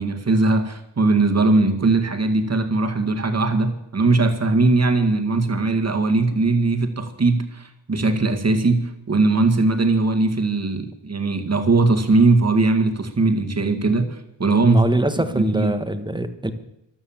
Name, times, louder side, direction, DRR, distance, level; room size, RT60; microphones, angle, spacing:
voice 1, 0.0-14.8 15.3-15.7, right 3 dB, 40° right, 5 dB, 2.0 m, -20 dB
voice 2, 14.6-16.5, right 1 dB, 10° right, 9 dB, 1.2 m, -23 dB
15.0 x 12.5 x 7.3 m, 0.82 s
wide cardioid pair, 120°, 41 cm